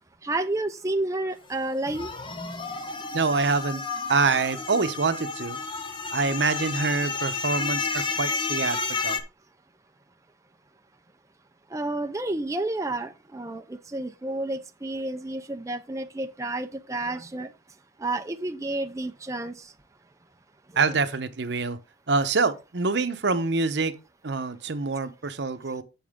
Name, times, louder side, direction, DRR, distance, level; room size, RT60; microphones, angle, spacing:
voice 1, 0.2-2.1 11.7-17.5 18.0-19.7, right 2 dB, 20° right, 0.5 m, -30 dB
sound 1, 1.8-9.2, left 4 dB, 30° left, 0.9 m, -31 dB
voice 2, 3.1-3.8 4.1-5.6 6.1-8.8 9.0-9.2 20.8-21.8 22.1-23.9 24.2-25.8, right 4 dB, 75° right, 0.9 m, -25 dB
7.9 x 7.1 x 3.6 m
head